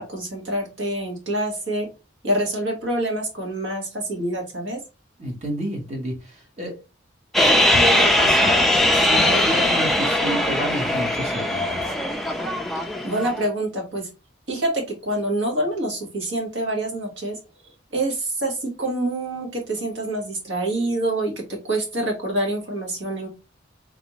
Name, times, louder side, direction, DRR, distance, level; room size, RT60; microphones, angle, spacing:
voice 1, 0.0-1.9 2.2-4.8 13.0-14.1 14.5-17.3 17.9-21.3 21.6-23.3, right 1 dB, 70° right, 0 dB, 1.4 m, -26 dB
voice 2, 5.2-6.8 7.4-8.6 8.9-12.0, right 1 dB, 35° right, 0 dB, 1.2 m, -29 dB
sound 1, 7.3-13.5, left 1 dB, ahead, 0.4 m, -20 dB
3.4 x 2.5 x 3.0 m, 0.28 s
head